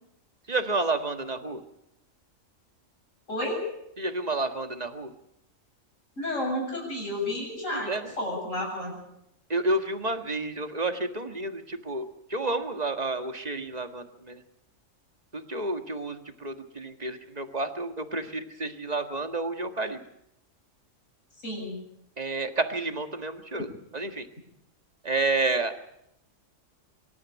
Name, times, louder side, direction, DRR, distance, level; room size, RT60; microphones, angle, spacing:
voice 1, 0.5-1.6 4.0-5.1 7.7-8.1 9.5-14.4 15.3-20.0 22.2-23.7 23.9-24.3 25.0-25.7, right 2 dB, 30° right, 7 dB, 1.8 m, -30 dB
voice 2, 3.3-3.6 6.2-9.0 21.4-21.8, left 1 dB, 75° left, -1 dB, 8.1 m, -31 dB
25.0 x 13.0 x 9.8 m, 0.80 s
omnidirectional pair, 1.3 m